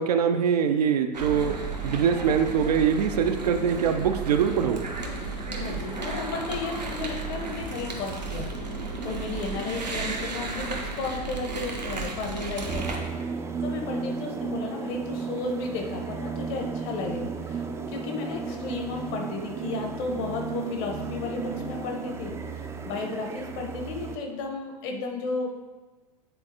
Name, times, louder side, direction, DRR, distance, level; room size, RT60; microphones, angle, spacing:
voice 1, 0.0-1.5 1.8-4.9, right 7 dB, 70° right, 6 dB, 0.5 m, -23 dB
sound 1, 1.1-13.0, right 3 dB, 85° right, 0.9 m, -33 dB
voice 2, 5.6-8.8 9.0-13.1 13.6-25.5, left 4 dB, 50° left, 2 dB, 1.1 m, -34 dB
sound 2, 12.7-24.2, right 5 dB, 15° right, 0.4 m, -34 dB
8.7 x 3.9 x 2.9 m, 1.3 s
figure-of-eight pair, 85°, 21 cm